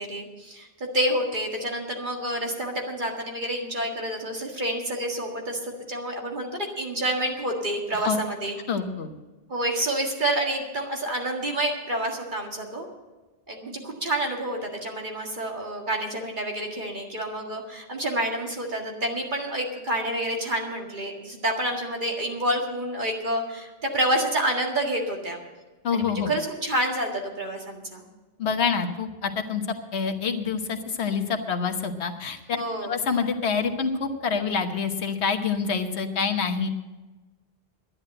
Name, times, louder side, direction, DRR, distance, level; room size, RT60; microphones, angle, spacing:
voice 1, 0.0-8.6 9.5-12.9 13.5-25.4 25.9-28.1 32.5-32.9, right 1 dB, 50° right, 1 dB, 2.1 m, -28 dB
voice 2, 8.7-9.1 25.8-26.3 28.4-29.6 29.9-32.4 32.8-36.7, left 5 dB, 85° left, 6 dB, 1.3 m, -26 dB
11.0 x 10.5 x 7.6 m, 1.2 s
omnidirectional pair, 1.1 m